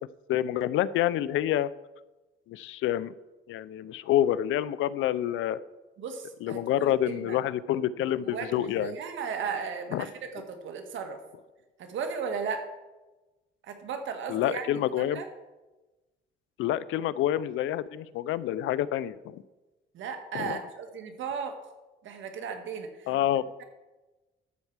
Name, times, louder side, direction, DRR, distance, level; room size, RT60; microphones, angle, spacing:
voice 1, 0.3-1.7 2.5-3.1 3.5-5.6 6.4-9.0 9.9-10.1 14.3-15.2 16.6-19.4 20.3-20.6 23.1-23.4, left 12 dB, 85° left, 18 dB, 0.5 m, -28 dB
voice 2, 6.0-6.9 7.2-7.4 8.2-11.2 11.8-12.7 13.7-15.2 19.9-21.6 22.0-23.1, right 6 dB, 75° right, 6 dB, 1.7 m, -36 dB
12.5 x 4.6 x 7.3 m, 1.1 s
cardioid pair, 90°, 20 cm